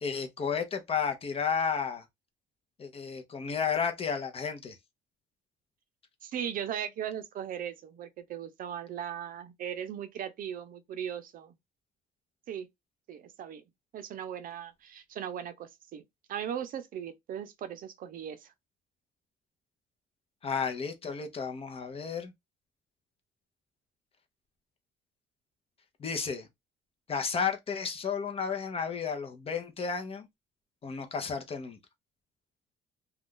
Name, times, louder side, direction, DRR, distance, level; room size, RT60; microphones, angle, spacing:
voice 1, 0.0-2.0 2.8-4.8 20.4-22.3 26.0-26.5 27.1-30.3 30.8-31.8, left 6 dB, 35° left, 0.7 m, -32 dB
voice 2, 6.2-11.5 12.5-12.7 13.1-13.6 13.9-16.0 16.3-18.5, right 9 dB, 55° right, 0.6 m, -38 dB
2.5 x 2.3 x 3.6 m
cardioid pair, 110°, 17 cm